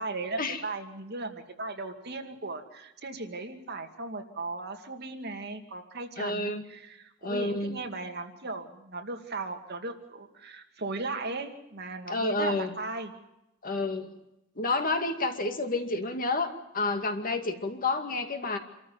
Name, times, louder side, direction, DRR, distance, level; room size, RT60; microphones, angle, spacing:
voice 1, 0.0-13.1, right 3 dB, 55° right, 4 dB, 2.4 m, -37 dB
voice 2, 6.2-6.6 7.2-7.8 12.1-12.7 13.6-14.1 14.6-18.6, left 3 dB, 45° left, 6 dB, 2.2 m, -29 dB
27.0 x 14.0 x 9.4 m, 0.88 s
head